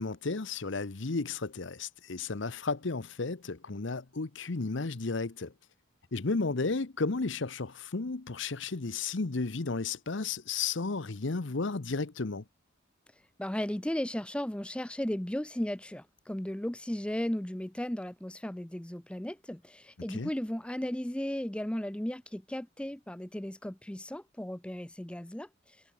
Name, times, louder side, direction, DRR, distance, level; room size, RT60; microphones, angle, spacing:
voice 1, 0.0-5.5 6.1-12.4 20.1-20.3, left 3 dB, 65° left, 0.9 m, -33 dB
voice 2, 13.4-25.8, left 1 dB, 5° left, 0.4 m, -35 dB
head